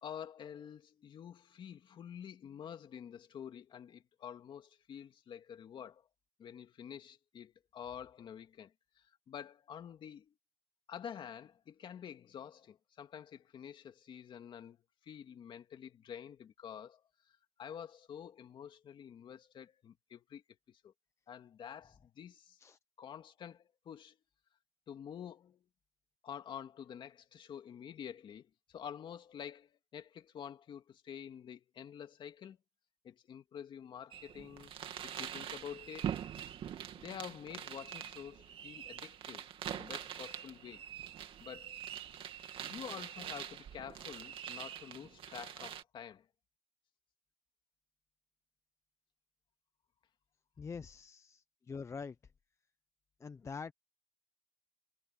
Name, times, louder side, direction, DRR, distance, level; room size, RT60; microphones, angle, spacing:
voice 1, 0.0-6.1 6.4-10.3 10.9-20.4 20.7-20.9 21.3-22.6 23.0-24.2 24.9-25.7 26.2-32.6 33.0-34.7 35.0-36.2 37.0-40.8 41.4-41.8 42.6-46.3, left 8 dB, 50° left, 2.4 m, -48 dB
sound 1, 34.1-45.8, right 9 dB, 60° right, 2.5 m, -44 dB
voice 2, 50.6-52.2 53.2-53.7, left 5 dB, 25° left, 0.7 m, -45 dB
cardioid pair, 120°, 10 cm